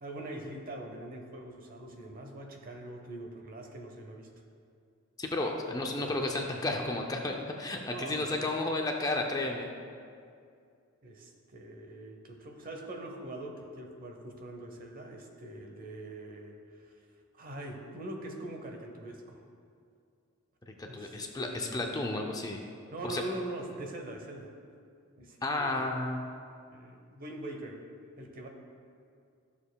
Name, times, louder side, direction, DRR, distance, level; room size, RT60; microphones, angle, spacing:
voice 1, 0.0-4.3 5.7-6.2 7.9-8.4 11.0-17.0 17.3-19.4 20.8-22.2 22.9-24.5 25.2-25.9 26.7-27.8 28.2-28.5, right 1 dB, 45° right, 3 dB, 0.8 m, -43 dB
voice 2, 5.2-9.7 20.7-22.6 23.0-23.2 25.4-26.3, left 2 dB, 20° left, 1 dB, 0.5 m, -32 dB
13.0 x 7.0 x 2.3 m, 2.3 s
head